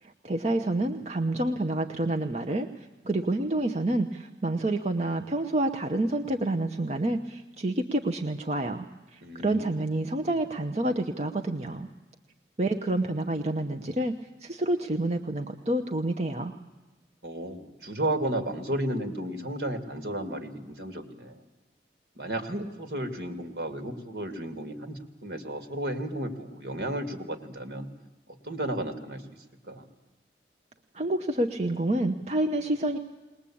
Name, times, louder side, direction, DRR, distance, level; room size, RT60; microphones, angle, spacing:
voice 1, 0.0-11.9 12.6-16.5 30.9-33.0, right 1 dB, 40° right, 5 dB, 0.8 m, -28 dB
voice 2, 9.2-9.7 17.2-21.4 22.2-27.9 28.4-29.2 29.6-29.9, right 1 dB, 70° right, 8 dB, 2.3 m, -33 dB
20.5 x 20.5 x 8.6 m, 1.2 s
head